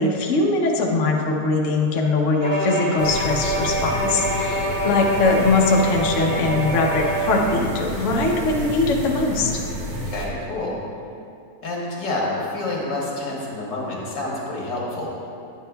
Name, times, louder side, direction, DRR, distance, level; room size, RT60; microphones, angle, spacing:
voice 1, 0.0-9.5, left 3 dB, 55° left, 0 dB, 1.0 m, -21 dB
Bowed string instrument, 2.4-7.8, right 1 dB, 50° right, 1.4 m, -25 dB
sound 1, 3.0-10.3, equal, 85° right, 1.7 m, -31 dB
voice 2, 10.1-10.8 11.6-15.1, left 2 dB, 85° left, -4 dB, 2.1 m, -28 dB
9.7 x 8.3 x 2.2 m, 2.5 s
omnidirectional pair, 1.9 m